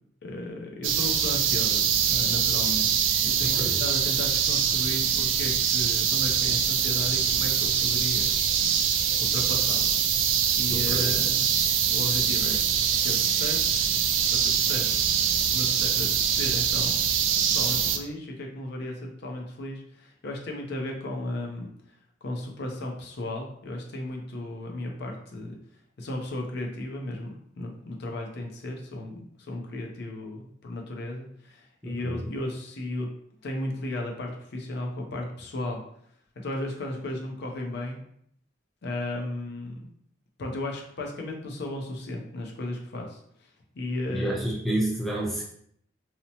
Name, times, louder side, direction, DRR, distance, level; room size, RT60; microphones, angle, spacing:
voice 1, 0.2-2.9 3.2-8.4 9.2-9.9 10.6-11.5 11.9-12.6 13.0-13.8 14.3-15.1 15.5-17.0 17.5-21.7 22.2-25.6 26.0-33.1 33.4-35.8 36.4-38.0 38.8-39.9 40.4-43.2 43.7-44.4, left 1 dB, 60° left, 1 dB, 0.5 m, -35 dB
sound 1, 0.8-18.0, right 8 dB, 75° right, 0.3 m, -24 dB
voice 2, 3.4-3.8 10.7-11.2 31.8-32.3 44.1-45.4, right 1 dB, ahead, -3 dB, 0.6 m, -30 dB
2.8 x 2.0 x 2.7 m, 0.66 s
head